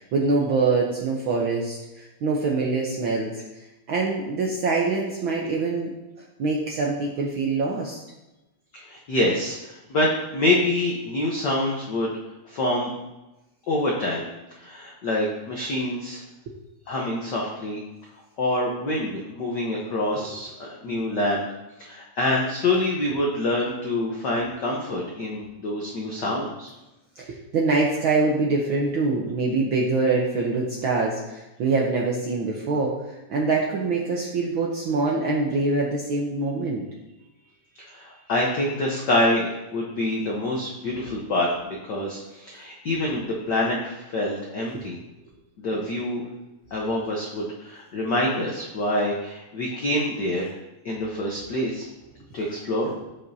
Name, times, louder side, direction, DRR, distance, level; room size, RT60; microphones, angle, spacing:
voice 1, 0.0-3.4 3.9-5.9 6.4-8.0 27.2-36.8 44.7-44.9, right 3 dB, 70° right, -2 dB, 1.2 m, -24 dB
voice 2, 8.7-12.1 12.5-12.9 13.7-14.3 14.6-16.2 16.9-17.8 18.4-21.5 21.8-26.7 37.8-41.5 41.9-45.0 45.6-46.2 46.7-50.5 50.8-51.9 52.3-52.9, left 1 dB, 80° left, -2 dB, 0.9 m, -26 dB
14.5 x 5.3 x 2.7 m, 1.0 s
omnidirectional pair, 3.3 m